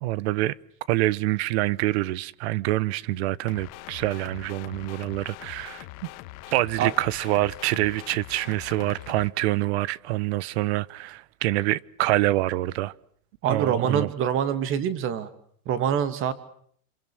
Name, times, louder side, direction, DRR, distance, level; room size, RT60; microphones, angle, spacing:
voice 1, 0.0-0.5 0.9-5.9 6.5-12.9 13.5-14.1, right 17 dB, 45° right, 1.0 m, -26 dB
sound 1, 3.5-9.3, left 18 dB, 35° left, 1.6 m, -42 dB
voice 2, 13.4-15.3 15.7-16.3, right 8 dB, 25° right, 2.5 m, -25 dB
28.5 x 27.0 x 6.2 m
supercardioid pair, 160°, 45 cm